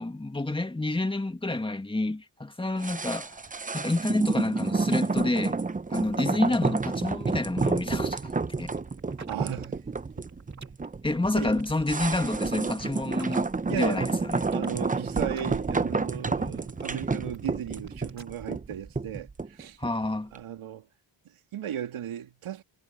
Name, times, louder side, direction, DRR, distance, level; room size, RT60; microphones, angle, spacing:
voice 1, 0.0-3.4 3.7-5.6 5.9-8.3 8.6-8.7 11.0-14.4 19.8-20.3, left 2 dB, 10° left, 2.0 m, -29 dB
sound 1, 2.8-20.0 20.3-20.4, right 4 dB, 15° right, 0.8 m, -30 dB
sound 2, 7.6-19.4, right 4 dB, 35° right, 3.0 m, -47 dB
voice 2, 9.3-9.9 10.2-10.3 11.3-11.6 13.7-14.0 14.5-19.8 20.3-20.9 21.2-22.6, right 10 dB, 80° right, 3.1 m, -36 dB
cardioid pair, 90°, 49 cm